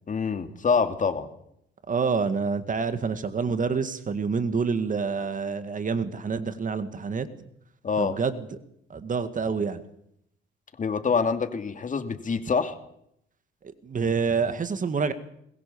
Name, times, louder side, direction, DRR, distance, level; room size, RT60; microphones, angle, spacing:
voice 1, 0.1-1.3 7.8-8.2 10.8-12.8, left 5 dB, 40° left, 8 dB, 2.5 m, -26 dB
voice 2, 1.9-7.3 8.0-8.6 8.9-9.8 13.6-15.1, right 5 dB, 40° right, 11 dB, 2.0 m, -27 dB
21.5 x 20.5 x 7.1 m, 0.74 s
cardioid pair, 90°, 20 cm